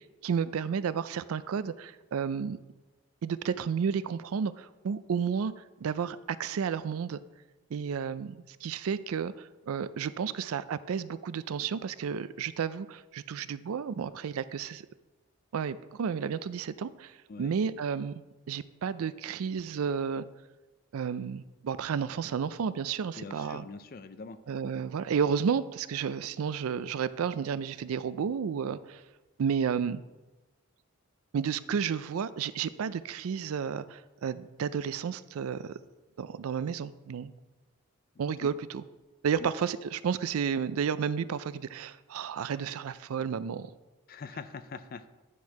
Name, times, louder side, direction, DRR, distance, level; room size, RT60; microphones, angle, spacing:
voice 1, 0.0-2.6 3.2-7.2 7.7-14.8 15.5-20.3 20.9-23.7 24.5-29.0 29.4-30.0 31.3-35.7 36.2-37.3 38.2-38.8 39.2-43.7, right 7 dB, 80° right, 15 dB, 0.4 m, -32 dB
voice 2, 23.2-24.4 38.4-38.5 39.4-39.5 44.1-45.0, left 4 dB, 40° left, 11 dB, 0.4 m, -43 dB
10.0 x 4.4 x 4.7 m, 1.1 s
head